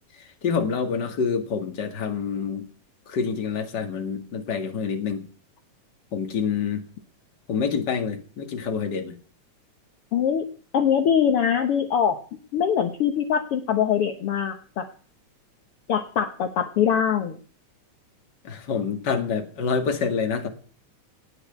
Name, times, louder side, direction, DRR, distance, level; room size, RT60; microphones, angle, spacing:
voice 1, 0.1-2.7 3.1-5.3 6.1-6.8 7.5-9.2 18.4-20.5, left 6 dB, 40° left, 5 dB, 2.4 m, -27 dB
voice 2, 10.1-10.5 10.7-12.2 12.5-14.9 15.9-17.4, left 8 dB, 60° left, 6 dB, 1.8 m, -23 dB
18.5 x 6.5 x 9.2 m, 0.43 s
omnidirectional pair, 3.4 m